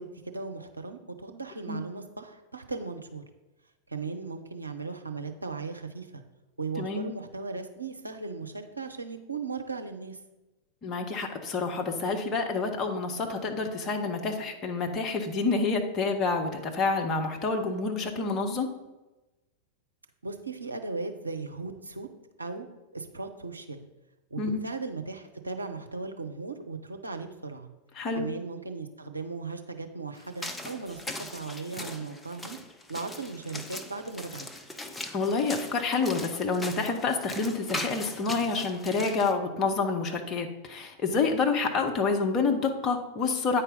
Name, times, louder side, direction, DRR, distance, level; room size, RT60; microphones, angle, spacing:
voice 1, 0.0-3.2 3.9-6.2 6.6-10.2 20.2-22.1 22.4-22.7 22.9-23.9 24.3-27.7 28.2-32.6 32.9-34.5, right 4 dB, 80° right, 5 dB, 0.7 m, -37 dB
voice 2, 6.8-7.1 10.8-18.7 24.4-24.6 28.0-28.3 35.1-43.6, left 4 dB, 30° left, 3 dB, 1.0 m, -28 dB
sound 1, 30.2-39.3, left 2 dB, 10° left, 0.6 m, -40 dB
8.8 x 4.4 x 5.2 m, 1.1 s
figure-of-eight pair, 90°, 0 cm